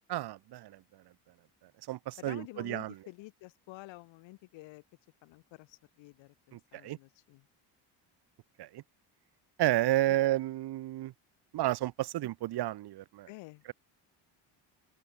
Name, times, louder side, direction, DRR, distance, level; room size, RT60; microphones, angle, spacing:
voice 1, 0.1-0.8 1.9-3.0 6.5-7.0 8.6-8.8 9.6-11.1 11.5-13.3, right 15 dB, 60° right, 1.2 m, -31 dB
voice 2, 2.2-4.8 5.2-7.5 10.1-10.2 13.3-13.6, left 21 dB, 90° left, 5.5 m, -50 dB
cardioid pair, 110°, 44 cm